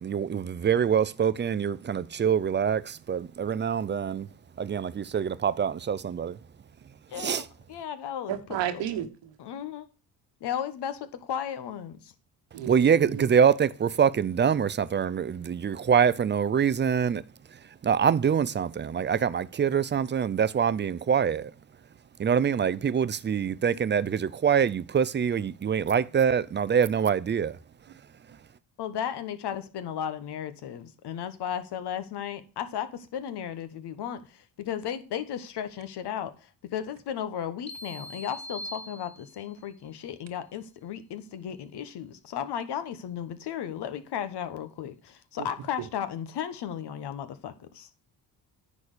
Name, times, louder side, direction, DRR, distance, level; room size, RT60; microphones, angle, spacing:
voice 1, 0.0-4.3 4.6-6.4 7.2-7.4 12.7-17.2 17.8-21.5 22.2-27.6, right 7 dB, 25° right, 0.5 m, -25 dB
voice 2, 7.1-8.3 8.7-8.8 9.4-9.8 10.4-12.1 28.8-47.9, left 9 dB, 65° left, 1.2 m, -35 dB
voice 3, 8.3-9.3 12.5-13.3 45.4-45.5, right 11 dB, 75° right, 1.4 m, -32 dB
sound 1, 37.7-39.6, equal, 25° left, 1.2 m, -42 dB
9.7 x 4.2 x 6.6 m
supercardioid pair, 75°, 43 cm